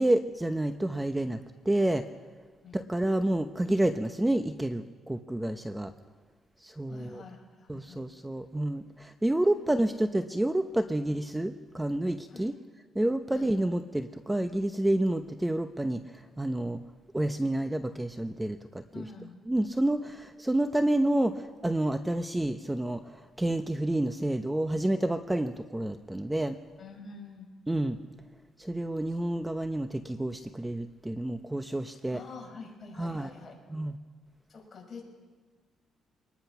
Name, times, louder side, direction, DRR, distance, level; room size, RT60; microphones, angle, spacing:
voice 1, 0.0-2.0 2.7-5.9 6.6-7.2 7.7-12.5 12.9-16.8 17.1-19.0 19.5-26.6 27.7-28.0 28.6-32.2 33.0-33.3 33.7-33.9, right 1 dB, 10° right, 8 dB, 0.8 m, -29 dB
voice 2, 6.9-8.0 9.4-9.7 12.3-12.5 13.3-13.5 18.9-19.4 26.8-27.5 29.1-29.2 32.1-33.6 34.5-35.0, left 4 dB, 40° left, 0 dB, 6.5 m, -46 dB
24.5 x 20.0 x 5.9 m, 1.4 s
cardioid pair, 90°, 0 cm